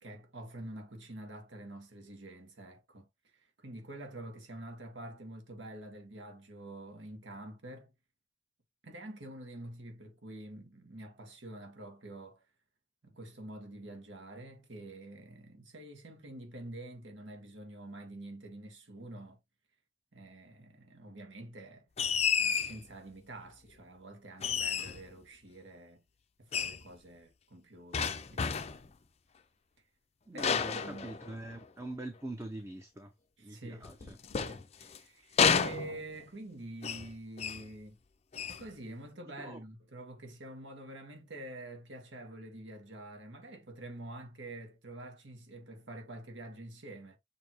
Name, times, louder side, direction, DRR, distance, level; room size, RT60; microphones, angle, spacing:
voice 1, 0.0-7.9 8.8-12.4 13.0-19.4 20.1-21.9 22.4-26.0 26.4-28.7 30.3-31.1 33.4-38.0 38.5-47.2, right 1 dB, 80° right, 1.4 m, -47 dB
sound 1, 22.0-22.8 24.4-25.1 26.5-26.8 27.9-28.9 30.4-31.6 33.8-35.0 35.4-36.3 36.8-37.1 37.4-37.7 38.3-38.7, left 6 dB, 35° left, 0.4 m, -31 dB
voice 2, 30.3-33.1 33.4-34.2 39.4-39.6, right 2 dB, 15° right, 0.5 m, -44 dB
6.7 x 2.7 x 2.9 m
head